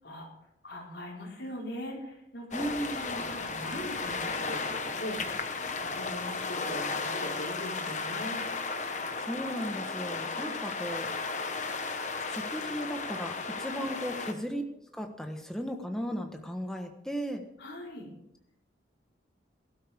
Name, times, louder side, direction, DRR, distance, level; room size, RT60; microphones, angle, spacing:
voice 1, 0.6-2.6 3.2-5.5 5.8-8.4 10.5-10.6 13.7-13.9 17.6-18.1, equal, 65° left, -3 dB, 4.5 m, -40 dB
sound 1, 2.5-14.3, left 4 dB, 40° left, 1.1 m, -34 dB
voice 2, 2.5-3.2 9.2-11.1 12.3-14.6 14.9-17.4, equal, 5° left, 3 dB, 1.3 m, -36 dB
18.5 x 12.0 x 3.6 m, 0.83 s
head